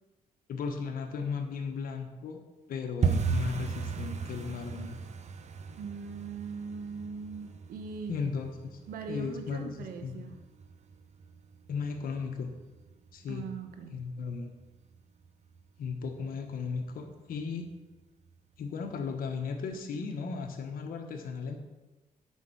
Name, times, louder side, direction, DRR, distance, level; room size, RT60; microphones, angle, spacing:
voice 1, 0.5-2.4 2.7-5.0 8.1-8.5 9.1-10.2 11.7-12.5 13.1-13.5 13.9-14.5 15.8-17.7 18.6-21.6, left 5 dB, 80° left, 5 dB, 1.3 m, -35 dB
sound 1, 3.0-13.7 14.0-14.7 14.9-15.3 15.5-15.9 16.2-16.3 16.8-17.3 17.7-17.8 18.3-18.4, right 5 dB, 50° right, 0.8 m, -36 dB
voice 2, 5.7-8.1 8.9-10.4 13.3-14.0, right 5 dB, 90° right, 6 dB, 1.0 m, -40 dB
8.3 x 5.6 x 6.3 m, 1.2 s
cardioid pair, 75°, 15 cm